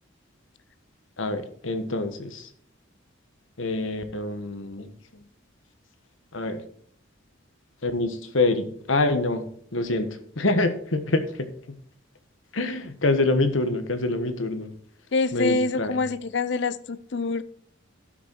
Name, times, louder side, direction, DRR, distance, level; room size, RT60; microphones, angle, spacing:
voice 1, 1.2-2.5 3.6-4.9 6.3-6.6 7.8-11.5 12.5-14.7 15.3-16.0, left 2 dB, 75° left, 1.2 m, -26 dB
voice 2, 15.1-17.4, left 3 dB, 60° left, 0.5 m, -26 dB
12.5 x 6.2 x 4.5 m
head